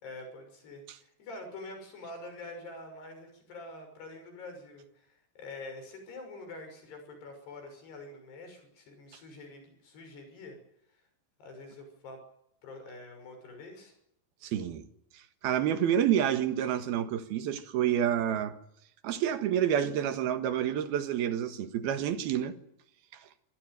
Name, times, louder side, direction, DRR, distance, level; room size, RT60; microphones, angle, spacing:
voice 1, 0.0-10.6 10.9-11.0 11.4-12.2 12.6-13.9, left 2 dB, 80° left, 8.2 m, -46 dB
voice 2, 14.4-14.8 15.1-18.6 19.0-22.6, right 10 dB, 70° right, 3.3 m, -28 dB
26.0 x 17.0 x 9.3 m
omnidirectional pair, 4.7 m